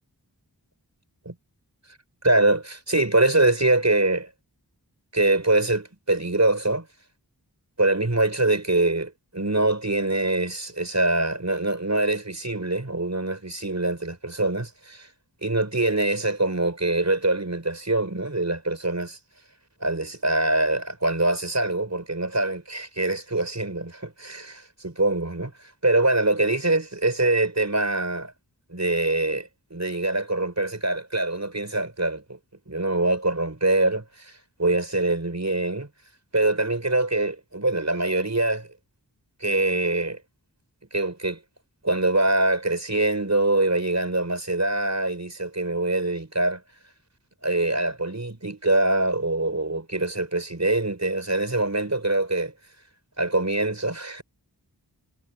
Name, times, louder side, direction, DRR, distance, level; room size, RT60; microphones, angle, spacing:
voice 1, 2.2-4.3 5.1-6.9 7.8-15.1 15.4-19.2 19.8-25.5 25.8-28.3 28.7-32.4 32.7-34.3 34.6-35.9 36.3-38.7 39.4-40.2 40.9-41.4 41.8-46.6 47.4-52.5 53.2-54.2, right 2 dB, 45° right, 5.3 m, -24 dB
wide cardioid pair, 40°, 40 cm